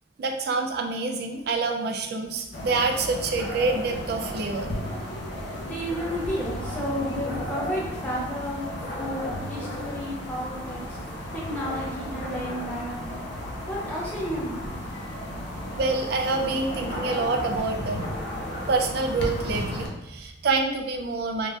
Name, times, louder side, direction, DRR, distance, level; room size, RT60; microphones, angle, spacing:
voice 1, 0.2-4.7 15.8-18.1 18.7-21.5, right 3 dB, 55° right, 3 dB, 0.3 m, -27 dB
sound 1, 2.5-19.9, left 1 dB, 60° left, 0.5 m, -34 dB
voice 2, 5.6-13.3 13.7-14.8, equal, 5° left, -6 dB, 0.6 m, -32 dB
2.6 x 2.3 x 3.1 m, 0.94 s
head